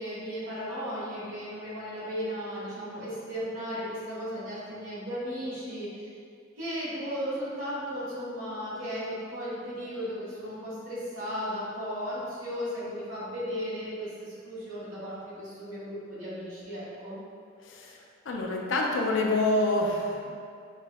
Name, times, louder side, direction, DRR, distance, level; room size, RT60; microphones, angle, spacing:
voice 1, 0.0-6.1 6.6-17.2, equal, 90° right, -9 dB, 1.4 m, -35 dB
voice 2, 17.6-18.0 18.3-20.3, left 2 dB, 65° left, 0 dB, 0.4 m, -27 dB
5.7 x 2.1 x 2.2 m, 2.3 s
head